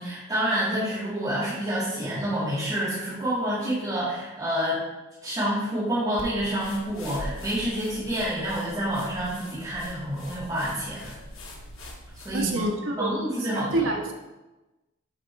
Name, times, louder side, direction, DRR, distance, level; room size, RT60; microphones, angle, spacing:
voice 1, 0.0-4.8 5.2-11.1 12.2-13.9, right 1 dB, 20° right, -12 dB, 2.2 m, -28 dB
sound 1, 6.2-12.7, left 1 dB, 80° left, 1.4 m, -42 dB
voice 2, 12.3-13.1 13.5-14.1, right 2 dB, 65° right, 2 dB, 1.0 m, -27 dB
6.3 x 4.3 x 4.6 m, 1.1 s
head